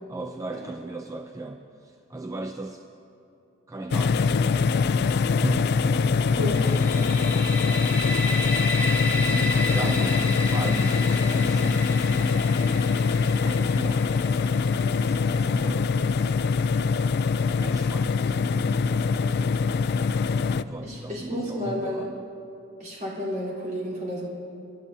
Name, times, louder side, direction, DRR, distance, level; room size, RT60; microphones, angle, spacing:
voice 1, 0.1-2.8 3.7-6.3 6.6-12.5 13.1-16.3 17.6-19.9 20.5-22.2, right 2 dB, 15° right, 5 dB, 0.4 m, -37 dB
sound 1, 3.9-20.6, left 5 dB, 55° left, 0.3 m, -23 dB
voice 2, 6.3-6.7 20.8-22.1 22.8-24.3, left 1 dB, 40° right, -5 dB, 3.7 m, -31 dB
sound 2, 6.5-16.2, left 1 dB, 10° left, 3.2 m, -33 dB
28.0 x 12.5 x 2.7 m, 2.8 s
head